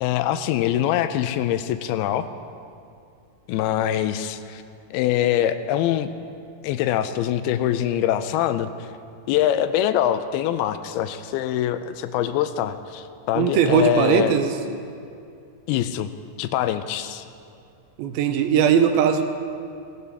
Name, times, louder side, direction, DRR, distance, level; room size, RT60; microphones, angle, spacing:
voice 1, 0.0-2.3 3.5-4.6 4.9-6.1 6.6-8.7 9.3-14.4 15.7-16.1 16.4-17.2, left 11 dB, 90° left, 11 dB, 2.6 m, -23 dB
voice 2, 13.4-14.5 18.0-19.2, right 7 dB, 85° right, 7 dB, 2.6 m, -19 dB
17.0 x 16.0 x 3.5 m, 2.5 s
omnidirectional pair, 4.4 m